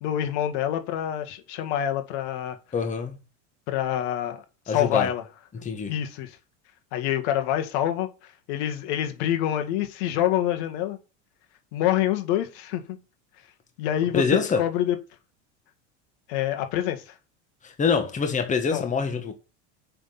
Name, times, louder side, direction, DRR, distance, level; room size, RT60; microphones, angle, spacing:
voice 1, 0.0-2.6 3.7-5.2 5.9-6.4 6.9-11.0 11.7-13.0 13.8-15.0 16.3-17.2 18.7-18.8, left 11 dB, 70° left, 2.0 m, -26 dB
voice 2, 2.7-3.1 4.7-5.1 5.6-5.9 14.1-14.6 17.6-19.3, left 5 dB, 20° left, 1.6 m, -25 dB
6.7 x 5.9 x 7.1 m
supercardioid pair, 115°, 36 cm